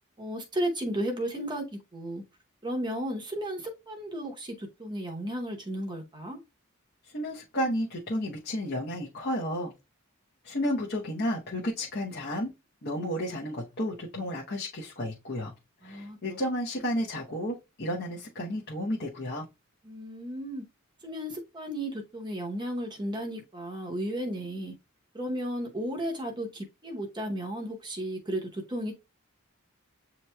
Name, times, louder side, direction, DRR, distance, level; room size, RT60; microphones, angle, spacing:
voice 1, 0.2-1.7 1.9-2.2 2.6-6.4 15.8-16.4 19.8-20.6 21.0-24.7 25.1-28.9, right 1 dB, 20° right, 0.8 m, -34 dB
voice 2, 7.1-9.7 10.4-12.5 12.8-15.5 15.8-19.5, equal, 45° left, 0.8 m, -32 dB
7.8 x 2.9 x 2.2 m
head